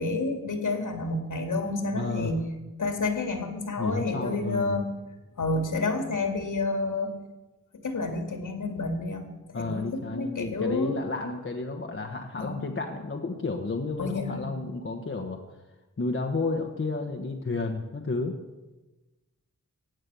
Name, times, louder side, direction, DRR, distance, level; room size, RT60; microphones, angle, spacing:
voice 1, 0.0-2.5 2.8-5.0 5.4-7.2 7.8-11.0 12.4-12.6 14.0-14.5, left 3 dB, 70° left, 5 dB, 2.3 m, -29 dB
voice 2, 1.9-2.3 3.8-4.8 9.5-15.4 16.0-18.4, left 3 dB, 40° left, 3 dB, 1.2 m, -31 dB
15.5 x 8.8 x 6.9 m, 1.1 s
wide cardioid pair, 110°, 33 cm